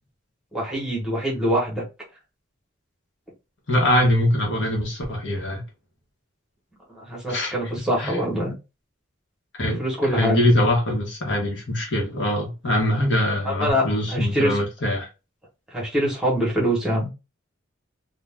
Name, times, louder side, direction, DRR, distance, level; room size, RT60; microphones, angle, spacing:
voice 1, 0.5-1.8 6.9-8.5 9.6-10.5 13.4-14.6 15.7-17.1, equal, 5° right, 1.0 m, -24 dB
voice 2, 3.7-5.6 7.3-7.5 8.0-8.1 9.6-15.1, left 1 dB, 60° left, 1.0 m, -23 dB
2.6 x 2.1 x 3.3 m
head